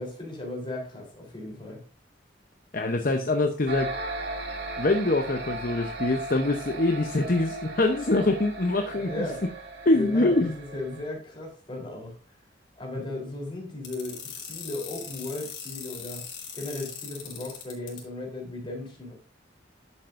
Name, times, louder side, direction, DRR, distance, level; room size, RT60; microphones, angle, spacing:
voice 1, 0.0-1.8 9.1-9.4 9.9-12.2 12.8-16.2 16.5-19.1, left 2 dB, 25° left, -1 dB, 3.5 m, -36 dB
voice 2, 2.7-3.9 4.8-9.3 9.8-10.5, left 2 dB, 45° left, 5 dB, 0.8 m, -24 dB
sound 1, 3.7-11.1, right 2 dB, 60° right, 2.2 m, -37 dB
sound 2, 13.8-18.0, left 7 dB, 85° left, 3.9 m, -39 dB
11.5 x 7.7 x 2.6 m, 0.38 s
head